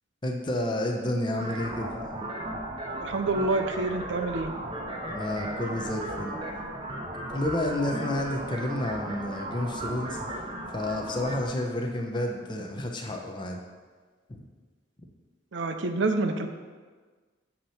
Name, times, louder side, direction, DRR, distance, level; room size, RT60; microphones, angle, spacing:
voice 1, 0.2-2.0 5.1-6.4 7.3-10.2 10.7-13.6 14.3-14.4, left 1 dB, 25° left, 2 dB, 0.7 m, -30 dB
sound 1, 1.4-11.5, right 1 dB, 25° right, 0.7 m, -36 dB
voice 2, 3.0-4.5 15.5-16.5, right 3 dB, 70° right, 6 dB, 0.6 m, -27 dB
8.5 x 3.0 x 5.6 m, 1.4 s
head